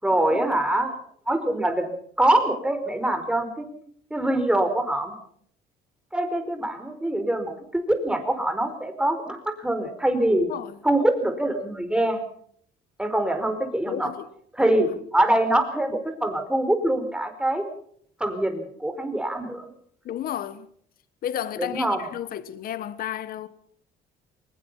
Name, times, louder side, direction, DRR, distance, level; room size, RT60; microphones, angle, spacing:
voice 1, 0.0-1.0 1.3-1.9 2.2-3.6 4.1-5.2 6.1-10.5 10.8-12.2 13.0-14.1 14.5-17.6 18.2-19.7 21.6-22.0, right 1 dB, 5° right, 4.7 m, -24 dB
voice 2, 13.9-14.3 14.6-14.7 20.0-20.7 21.2-23.5, left 10 dB, 60° left, 1.4 m, -32 dB
23.0 x 20.0 x 5.7 m
cardioid pair, 110°, 17 cm